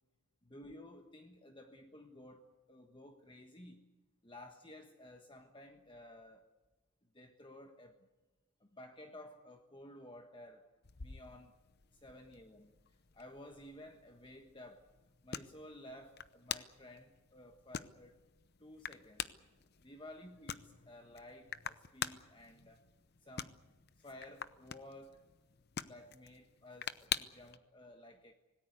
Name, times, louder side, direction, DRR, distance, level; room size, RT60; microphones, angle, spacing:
voice 1, 0.4-3.9 4.2-6.5 7.1-7.9 8.6-10.7 11.0-11.5 12.0-12.7 13.1-14.9 15.2-18.2 18.6-19.3 19.8-22.9 23.2-23.6 24.0-25.2 25.8-28.3, left 1 dB, 20° left, 1.3 m, -54 dB
sound 1, 10.8-27.6, left 8 dB, 45° left, 0.8 m, -47 dB
26.0 x 18.5 x 8.2 m
head